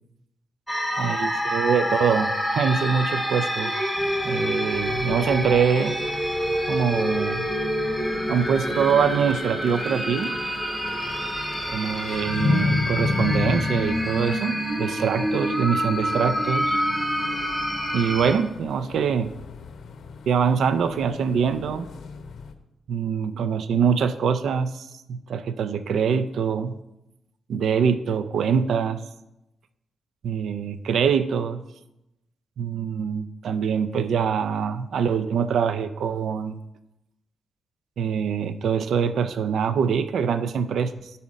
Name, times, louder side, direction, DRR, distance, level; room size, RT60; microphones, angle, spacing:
sound 1, 0.7-18.3, equal, 5° right, 1.2 m, -27 dB
voice 1, 1.0-3.9 4.2-6.0 6.7-7.5 8.3-10.3 11.7-16.8 17.9-19.3 20.3-21.9 22.9-26.8 27.5-29.0 30.2-31.6 32.6-36.6 38.0-41.1, right 6 dB, 75° right, 12 dB, 0.4 m, -24 dB
sound 2, 3.9-22.5, left 4 dB, 65° left, 0.7 m, -34 dB
9.9 x 4.2 x 5.1 m, 0.90 s
cardioid pair, 125°, 0 cm